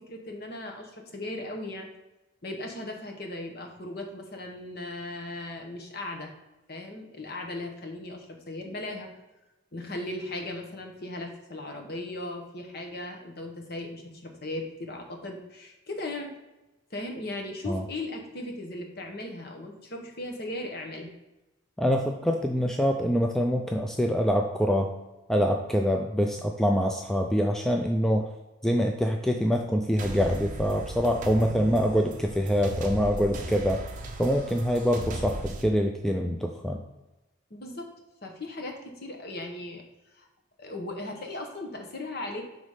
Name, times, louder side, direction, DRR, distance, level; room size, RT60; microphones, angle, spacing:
voice 1, 0.0-1.9 2.4-6.3 6.7-9.1 9.7-16.3 16.9-21.1 37.5-37.9 38.2-39.8 40.2-40.3 40.6-42.4, left 1 dB, 50° left, 2 dB, 1.0 m, -37 dB
voice 2, 21.8-24.9 25.3-28.2 28.6-33.9 34.2-36.8, equal, ahead, 2 dB, 0.3 m, -25 dB
sound 1, 30.0-35.6, right 1 dB, 40° right, 0.7 m, -37 dB
5.7 x 3.9 x 4.9 m, 1.0 s
head